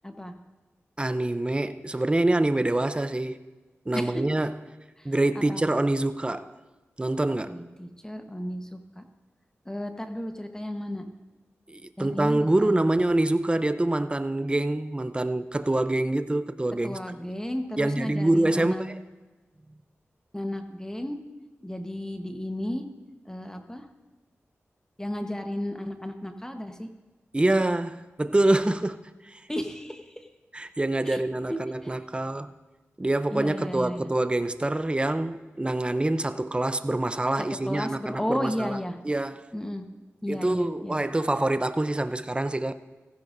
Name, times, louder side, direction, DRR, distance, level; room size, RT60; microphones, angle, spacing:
voice 1, 0.0-0.3 3.9-4.2 5.0-5.1 5.5-5.6 7.4-9.0 9.6-11.1 12.0-12.8 16.8-18.8 20.3-21.2 21.6-22.8 23.3-23.9 25.0-26.9 29.5-30.3 31.0-31.2 31.5-31.9 33.3-34.1 37.4-39.0 39.5-39.8 40.2-40.9, equal, 10° left, 1.2 m, -33 dB
voice 2, 1.0-3.4 3.9-4.6 5.0-6.5 7.0-7.6 11.7-17.0 17.8-19.0 27.3-29.0 29.2-29.4 30.5-32.5 33.0-38.8 39.0-39.5 40.3-42.7, right 1 dB, 20° right, 0.6 m, -25 dB
15.5 x 15.0 x 2.7 m
cardioid pair, 50°, 5 cm